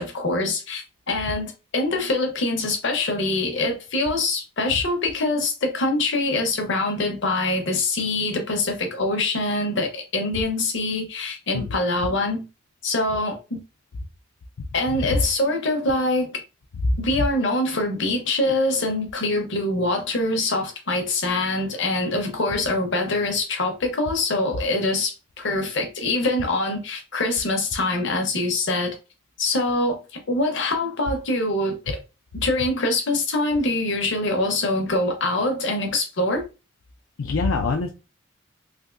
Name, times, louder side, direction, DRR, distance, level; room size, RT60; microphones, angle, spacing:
voice 1, 0.0-12.5 12.8-13.6 14.7-16.4 17.0-29.0 29.4-32.0 32.3-36.4, left 2 dB, 60° left, 0.9 m, -24 dB
voice 2, 37.2-37.9, left 3 dB, 75° left, 0.5 m, -24 dB
3.4 x 2.7 x 2.5 m
head